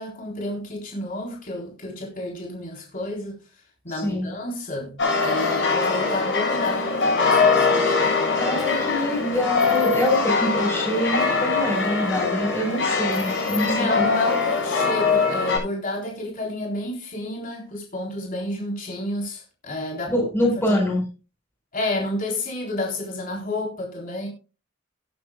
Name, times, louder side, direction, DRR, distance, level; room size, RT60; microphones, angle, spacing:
voice 1, 0.0-3.4 3.8-5.0 5.2-8.6 13.6-20.1 20.7-20.8 21.7-24.3, left 1 dB, 45° left, 4.0 m, -30 dB
sound 1, 5.0-15.6, left 4 dB, 65° left, 7.2 m, -22 dB
voice 2, 8.4-14.0 20.1-21.0, left 1 dB, 10° left, 4.9 m, -25 dB
19.5 x 9.4 x 2.3 m
head